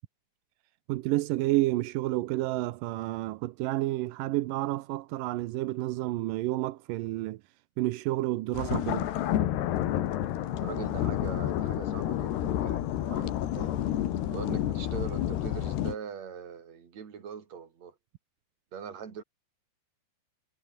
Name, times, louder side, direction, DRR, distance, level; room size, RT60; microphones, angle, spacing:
voice 1, 0.9-7.4 7.8-9.1, right 17 dB, 75° right, 2.0 m, -30 dB
sound 1, 8.5-16.0, left 12 dB, 80° left, 3.8 m, -30 dB
voice 2, 10.6-13.8 14.2-18.0 18.7-19.2, right 7 dB, 45° right, 3.9 m, -42 dB
omnidirectional pair, 4.8 m